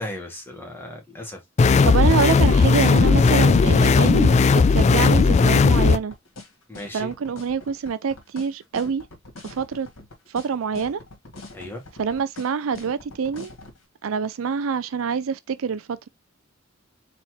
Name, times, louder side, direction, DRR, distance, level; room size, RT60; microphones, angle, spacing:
voice 1, 0.0-1.4 6.7-7.1 11.5-11.8, left 1 dB, 10° left, 2.0 m, -35 dB
sound 1, 1.6-6.0, left 4 dB, 35° left, 0.3 m, -16 dB
voice 2, 1.8-6.1 6.9-9.1 9.4-9.9 10.3-11.0 12.0-13.5 14.0-16.1, right 6 dB, 80° right, 0.4 m, -26 dB
sound 2, 6.1-13.8, left 2 dB, 85° left, 1.9 m, -42 dB
4.3 x 4.2 x 2.9 m
head